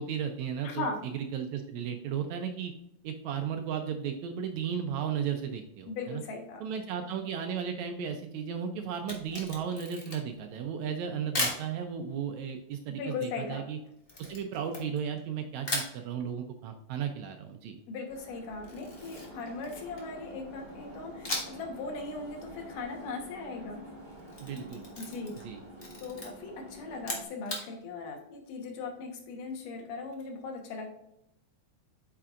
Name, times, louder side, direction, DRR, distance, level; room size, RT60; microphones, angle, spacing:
voice 1, 0.0-0.9 1.1-2.7 3.0-6.2 6.6-13.8 14.3-17.8 24.4-24.8 25.4-25.6, right 7 dB, 75° right, 5 dB, 1.7 m, -35 dB
voice 2, 0.6-1.2 5.9-6.6 13.0-13.6 17.9-23.8 25.0-25.3 26.0-30.9, left 4 dB, 80° left, 2 dB, 2.8 m, -38 dB
Camera, 8.9-10.4 11.3-11.7 14.1-15.3 15.6-16.0 18.6-20.1 21.2-21.7 22.0-22.1 24.1-25.5 25.8-26.3 26.9-27.7, left 2 dB, 50° left, 0.6 m, -36 dB
sound 1, 18.1-27.2, right 1 dB, 50° right, 0.5 m, -48 dB
8.5 x 5.9 x 2.5 m, 0.78 s
omnidirectional pair, 3.7 m